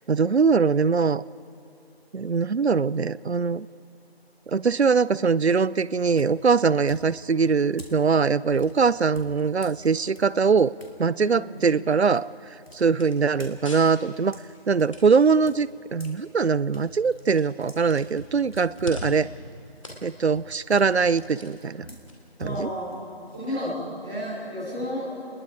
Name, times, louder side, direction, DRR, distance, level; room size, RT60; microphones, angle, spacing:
voice 1, 0.1-1.2 2.1-3.7 4.5-10.7 11.0-12.3 12.7-14.4 14.7-19.3 20.0-21.9 22.4-22.7, right 5 dB, 85° right, 20 dB, 0.6 m, -22 dB
sound 1, 6.2-11.0 11.3-16.2 16.5-23.9, equal, 65° left, 3.0 m, -46 dB
sound 2, 6.5-23.5, left 1 dB, 30° left, 2.4 m, -47 dB
voice 2, 11.2-11.6 22.4-22.9 23.3-25.2, equal, 5° right, -14 dB, 1.9 m, -32 dB
25.5 x 20.5 x 5.0 m, 3.0 s
figure-of-eight pair, 170°, 32 cm